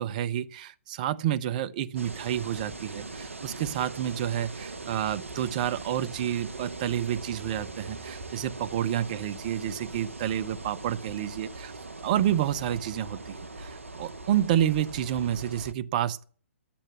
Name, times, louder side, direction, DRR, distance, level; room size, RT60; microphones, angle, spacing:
voice 1, 0.0-11.7 12.0-16.2, right 11 dB, 35° right, 0.7 m, -29 dB
sound 1, 2.0-15.7, right 3 dB, 70° right, 1.1 m, -41 dB
11.5 x 8.6 x 8.7 m
figure-of-eight pair, 125°, 7 cm